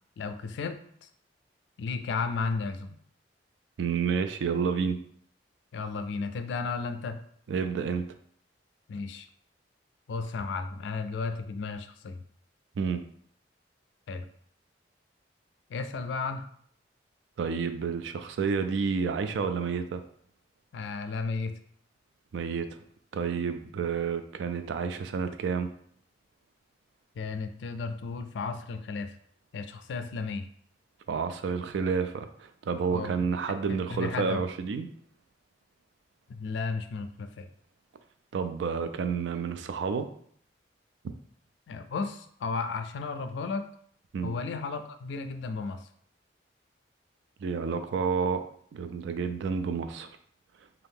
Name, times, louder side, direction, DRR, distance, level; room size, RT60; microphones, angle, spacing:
voice 1, 0.2-1.1 1.8-3.0 5.7-7.2 8.9-9.3 10.1-12.2 14.1-14.3 15.7-16.4 20.7-21.5 27.2-29.1 29.5-30.5 32.9-33.1 33.7-34.4 36.3-37.5 41.7-43.7 44.2-45.9, left 4 dB, 70° left, 8 dB, 0.3 m, -34 dB
voice 2, 3.8-5.0 7.5-8.1 12.8-13.0 17.4-20.0 22.3-22.7 23.1-25.7 31.1-34.9 38.3-40.1 44.1-44.3 47.4-48.4 48.7-50.1, right 5 dB, 75° right, 9 dB, 0.3 m, -30 dB
2.7 x 2.3 x 3.5 m, 0.62 s
head